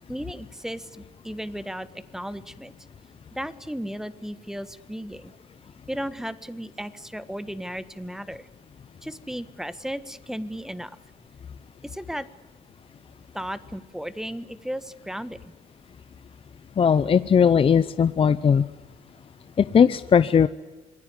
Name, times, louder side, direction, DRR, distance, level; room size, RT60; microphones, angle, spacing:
voice 1, 0.1-2.7 3.3-5.3 5.9-8.5 9.0-10.9 11.8-12.3 13.3-15.5, equal, 5° right, 13 dB, 1.5 m, -35 dB
voice 2, 16.8-18.6 19.6-20.5, left 7 dB, 35° left, 13 dB, 0.8 m, -18 dB
27.0 x 20.0 x 9.7 m, 1.2 s
cardioid pair, 110°, 17 cm